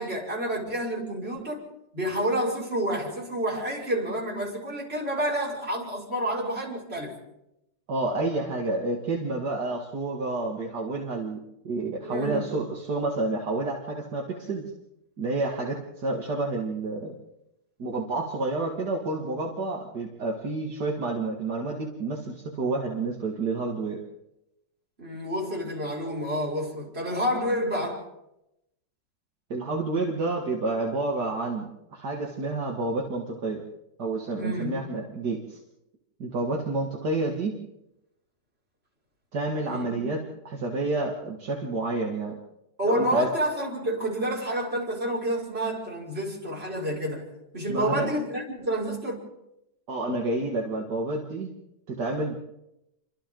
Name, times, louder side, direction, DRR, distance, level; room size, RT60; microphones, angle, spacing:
voice 1, 0.0-1.6 1.9-7.1 12.0-12.5 25.0-28.0 34.4-34.8 39.7-40.0 42.8-47.3 47.5-49.2, equal, 35° right, 6.1 m, -29 dB
voice 2, 7.9-11.4 11.6-14.6 15.2-17.1 17.8-24.0 29.5-33.6 34.0-35.6 36.2-37.5 39.3-42.4 42.8-43.3 47.7-48.1 49.9-51.5 51.9-52.4, right 2 dB, 65° right, 2.6 m, -29 dB
29.0 x 24.5 x 3.9 m
omnidirectional pair, 1.9 m